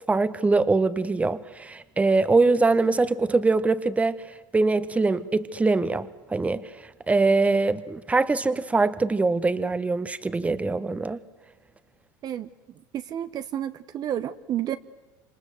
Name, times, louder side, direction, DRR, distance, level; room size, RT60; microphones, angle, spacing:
voice 1, 0.1-4.2 4.5-6.7 7.1-11.2, right 3 dB, 15° right, 14 dB, 1.3 m, -23 dB
voice 2, 12.9-14.8, right 11 dB, 40° right, 11 dB, 1.1 m, -30 dB
27.5 x 27.0 x 7.9 m, 1.1 s
hypercardioid pair, 100°, 10 cm